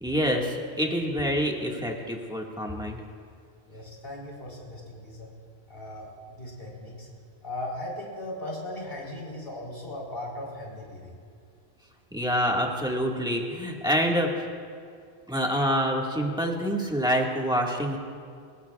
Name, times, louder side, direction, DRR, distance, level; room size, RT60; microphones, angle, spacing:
voice 1, 0.0-3.0 12.1-14.3 15.3-18.0, equal, 5° right, -1 dB, 1.8 m, -26 dB
voice 2, 3.7-5.3 5.7-7.1 7.4-11.2, left 1 dB, 55° left, -3 dB, 4.1 m, -38 dB
29.0 x 16.5 x 2.4 m, 2.2 s
omnidirectional pair, 1.1 m